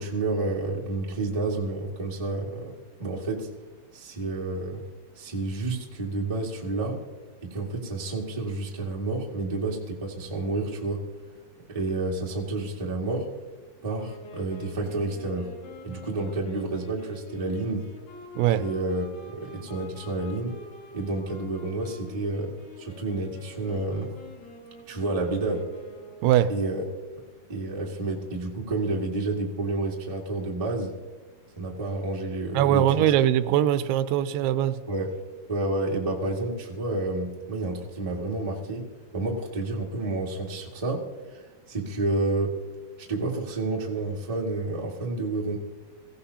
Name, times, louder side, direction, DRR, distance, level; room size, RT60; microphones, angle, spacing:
voice 1, 0.0-2.7 3.0-3.5 3.9-4.8 5.1-7.0 7.4-11.0 11.7-13.3 13.8-15.5 15.8-17.8 18.6-20.5 20.9-24.2 24.9-25.6 26.5-26.8 27.2-30.9 31.6-33.1 34.9-35.1 35.5-38.9 39.1-41.0 41.3-41.4 41.7-42.6 43.0-45.6, right 2 dB, 35° right, 0.5 m, -30 dB
Wind instrument woodwind instrument, 13.9-26.4, left 2 dB, 85° left, 4.3 m, -46 dB
voice 2, 32.5-34.8, right 11 dB, 85° right, 2.6 m, -21 dB
23.0 x 16.0 x 2.9 m
omnidirectional pair, 4.7 m